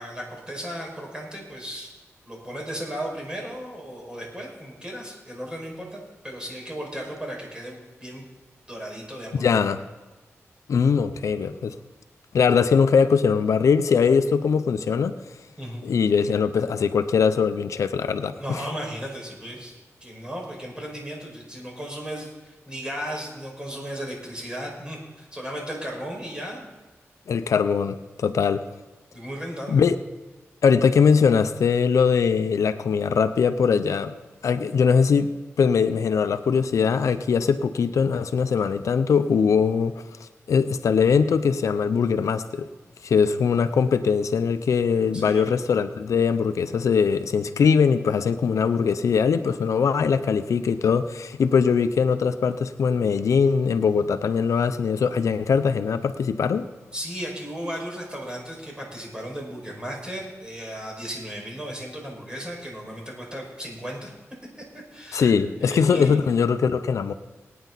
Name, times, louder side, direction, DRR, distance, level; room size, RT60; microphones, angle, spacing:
voice 1, 0.0-1.9 2.3-8.3 8.7-9.6 15.6-15.8 18.3-26.7 29.1-29.8 45.1-45.4 56.9-64.1 64.9-65.3 65.6-66.2, equal, 15° right, -1 dB, 5.3 m, -35 dB
voice 2, 9.3-9.8 10.7-11.8 12.3-15.1 15.8-18.7 27.3-28.6 29.7-30.0 30.6-34.1 34.4-35.3 35.6-39.9 40.2-42.7 43.0-56.7 65.1-67.1, left 6 dB, 90° left, 11 dB, 0.6 m, -21 dB
22.0 x 9.4 x 4.1 m, 1.2 s
cardioid pair, 70°, 5 cm